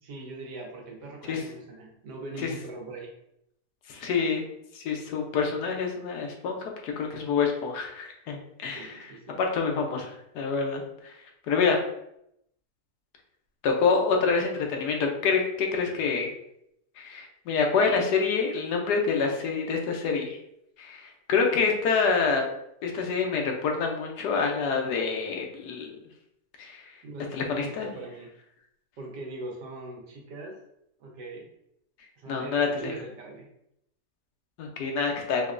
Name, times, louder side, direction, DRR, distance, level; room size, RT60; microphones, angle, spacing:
voice 1, 0.0-3.1 8.7-9.4 27.0-28.3 29.0-30.6 31.0-31.5 32.2-33.5, right 2 dB, 80° right, 0 dB, 1.4 m, -41 dB
voice 2, 3.9-4.4 4.7-6.6 6.8-9.0 9.4-11.1 11.5-11.8 13.6-16.3 17.0-20.4 20.8-22.4 22.8-25.9 26.6-26.9 27.3-27.9 32.3-32.9 34.6-35.4, left 5 dB, 75° left, 2 dB, 1.2 m, -27 dB
4.9 x 2.2 x 2.5 m, 0.77 s
omnidirectional pair, 1.8 m